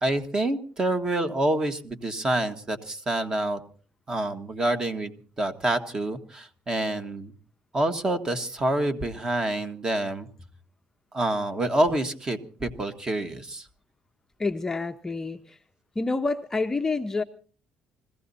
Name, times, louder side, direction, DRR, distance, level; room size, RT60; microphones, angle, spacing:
voice 1, 0.0-3.6 4.1-7.3 7.7-10.3 11.1-13.7, right 1 dB, 20° right, 8 dB, 1.5 m, -27 dB
voice 2, 14.4-15.6 16.0-17.2, left 3 dB, 15° left, 6 dB, 0.7 m, -28 dB
21.5 x 15.5 x 4.1 m, 0.42 s
cardioid pair, 145°, 3 cm